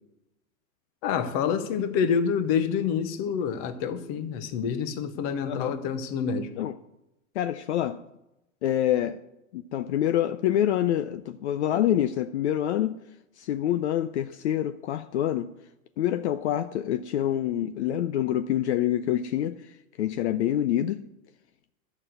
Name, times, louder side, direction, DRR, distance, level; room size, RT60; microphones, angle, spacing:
voice 1, 1.0-6.5, left 7 dB, 25° left, 10 dB, 0.8 m, -27 dB
voice 2, 7.3-8.0 8.6-9.2 9.5-12.9 13.4-15.5 16.0-21.0, left 11 dB, 55° left, 10 dB, 0.6 m, -26 dB
12.0 x 6.0 x 7.9 m, 0.90 s
supercardioid pair, 170°, 42 cm